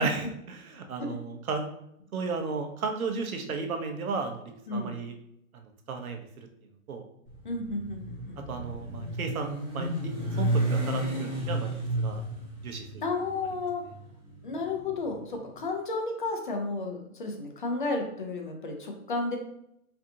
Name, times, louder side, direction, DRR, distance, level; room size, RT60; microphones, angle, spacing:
voice 1, 0.0-1.6 2.1-5.1 5.5-6.5 6.9-7.0 8.5-10.1 10.4-12.2 12.6-13.0, right 4 dB, 80° right, 5 dB, 0.9 m, -34 dB
Motorcycle, 7.3-15.5, right 1 dB, 5° right, 1.0 m, -32 dB
voice 2, 7.4-8.4 13.0-13.8 14.4-19.4, left 3 dB, 35° left, 3 dB, 0.5 m, -32 dB
4.3 x 2.6 x 2.7 m, 0.76 s
hypercardioid pair, 155°, 42 cm